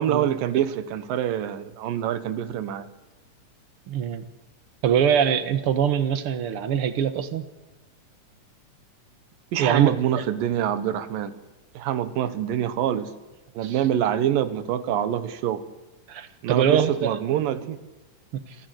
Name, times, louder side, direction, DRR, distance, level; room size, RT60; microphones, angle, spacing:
voice 1, 0.0-2.9 9.5-11.4 11.7-13.1 13.6-15.6 16.4-17.8, right 10 dB, 85° right, 12 dB, 3.0 m, -25 dB
voice 2, 3.9-4.2 4.8-7.4 9.6-10.2 13.6-13.8 16.1-17.2 18.3-18.4, right 8 dB, 55° right, 11 dB, 1.7 m, -23 dB
26.0 x 15.5 x 8.0 m, 1.1 s
omnidirectional pair, 3.9 m